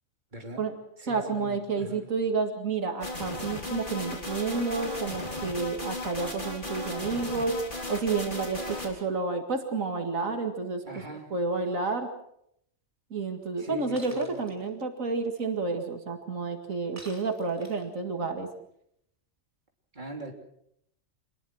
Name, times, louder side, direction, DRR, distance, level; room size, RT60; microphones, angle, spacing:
voice 1, 0.3-0.6 1.0-2.1 10.8-11.3 13.6-14.4 19.9-20.3, right 1 dB, 35° right, 2 dB, 3.5 m, -41 dB
voice 2, 1.1-7.6 7.9-10.8 11.3-12.1 13.1-18.5, right 4 dB, 90° right, 5 dB, 2.5 m, -30 dB
sound 1, 3.0-8.9, left 2 dB, 40° left, 4.3 m, -35 dB
Shatter, 14.0-14.5 17.0-18.0, right 1 dB, 10° right, 3.4 m, -48 dB
27.0 x 20.5 x 6.3 m, 0.73 s
omnidirectional pair, 1.3 m